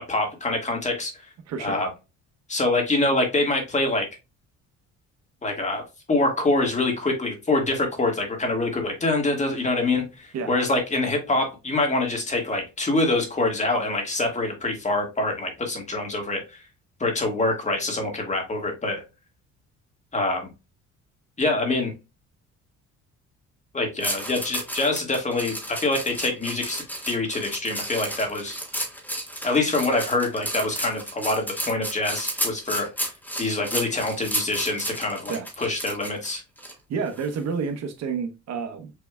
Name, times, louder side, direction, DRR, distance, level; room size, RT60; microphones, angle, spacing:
voice 1, 0.1-1.1 1.6-1.9 2.5-4.1 5.4-5.8 6.1-16.4 17.0-19.0 20.1-20.5 21.4-21.9 23.7-28.6 29.4-33.1 33.4-36.4, left 2 dB, 25° left, 1.8 m, -25 dB
voice 2, 1.5-1.8 10.3-10.5 35.3-35.5 36.9-38.9, right 5 dB, 60° right, 1.0 m, -29 dB
sound 1, 24.0-36.7 37.2-37.4, right 1 dB, 5° left, 1.6 m, -32 dB
6.6 x 3.4 x 2.3 m
cardioid pair, 110°, 30 cm